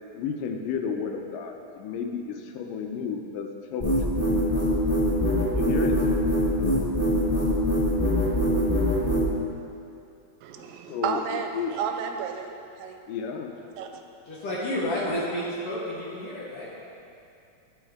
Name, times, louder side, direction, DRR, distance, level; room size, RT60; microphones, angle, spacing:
voice 1, 0.2-4.2 5.5-6.0 10.9-11.7 13.1-13.6, left 6 dB, 85° left, 4 dB, 2.3 m, -32 dB
sound 1, 3.8-9.3, equal, 40° left, 0.7 m, -23 dB
voice 2, 10.4-12.5 12.8-13.0 13.8-14.0, right 7 dB, 90° right, 5 dB, 2.3 m, -32 dB
voice 3, 14.3-16.7, left 1 dB, 60° left, -7 dB, 1.6 m, -30 dB
12.0 x 5.4 x 3.6 m, 2.6 s
omnidirectional pair, 3.9 m